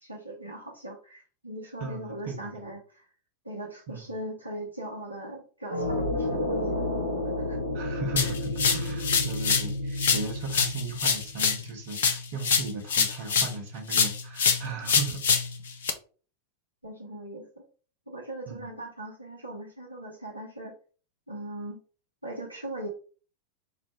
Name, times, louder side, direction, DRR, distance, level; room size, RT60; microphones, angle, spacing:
voice 1, 0.0-3.1 3.4-6.9 7.5-7.6 8.2-8.3 16.8-17.5 18.1-20.8 21.3-21.8 22.2-22.9, right 1 dB, 85° right, -1 dB, 0.7 m, -39 dB
voice 2, 1.8-2.6 3.9-4.1 7.7-15.2 18.5-18.7, right 4 dB, 50° right, 2 dB, 0.8 m, -37 dB
sound 1, 5.7-11.6, left 1 dB, 85° left, 1.0 m, -31 dB
sound 2, 8.2-9.7 10.0-13.6 13.9-15.9, left 6 dB, 65° left, 0.4 m, -25 dB
4.0 x 2.1 x 2.9 m, 0.39 s
figure-of-eight pair, 90°, 0 cm